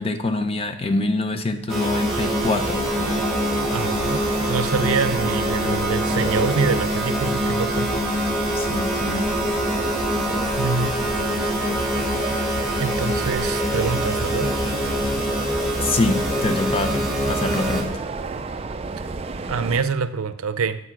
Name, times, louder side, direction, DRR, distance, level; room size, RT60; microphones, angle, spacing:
voice 1, 0.0-2.8 8.5-9.2 15.8-18.0, left 2 dB, 25° left, 8 dB, 0.6 m, -25 dB
sound 1, 1.7-17.8, equal, 5° right, 1.6 m, -24 dB
sound 2, 2.0-19.8, right 3 dB, 30° right, 0.4 m, -31 dB
voice 2, 3.7-8.0 10.6-11.0 12.8-14.5 19.5-20.8, right 5 dB, 85° right, 12 dB, 0.5 m, -25 dB
8.0 x 5.2 x 6.0 m, 0.85 s
head